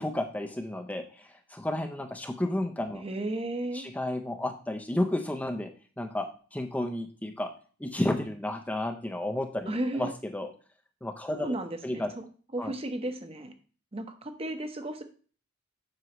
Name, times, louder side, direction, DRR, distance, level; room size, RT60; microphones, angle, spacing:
voice 1, 0.0-3.0 3.7-5.7 6.0-7.5 7.8-10.5 11.0-11.5 11.8-12.1 12.6-12.7, left 1 dB, 10° left, 4 dB, 0.5 m, -32 dB
voice 2, 2.9-3.9 9.7-10.1 11.3-12.2 12.5-13.5 13.9-15.0, right 1 dB, 30° right, 7 dB, 0.9 m, -34 dB
7.7 x 6.1 x 3.0 m, 0.39 s
head